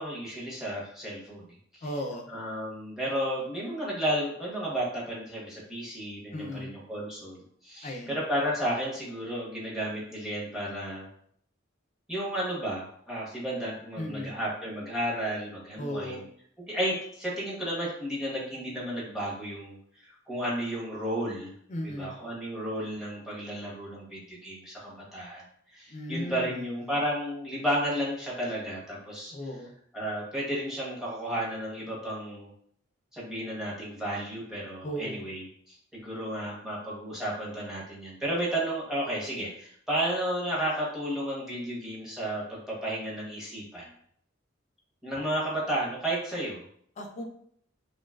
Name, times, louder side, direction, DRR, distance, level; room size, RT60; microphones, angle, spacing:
voice 1, 0.0-1.4 1.7-1.9 2.3-11.1 12.1-16.2 16.7-21.5 21.8-25.4 25.7-29.3 29.9-32.5 33.1-43.9 45.0-46.6, right 1 dB, 5° right, -6 dB, 0.7 m, -33 dB
voice 2, 1.8-2.3 6.3-6.7 7.8-8.2 14.0-14.3 15.8-16.3 21.7-22.1 25.9-26.9 29.3-29.7 34.8-35.2 47.0-47.3, equal, 35° left, 2 dB, 0.3 m, -36 dB
2.5 x 2.3 x 2.2 m, 0.66 s
head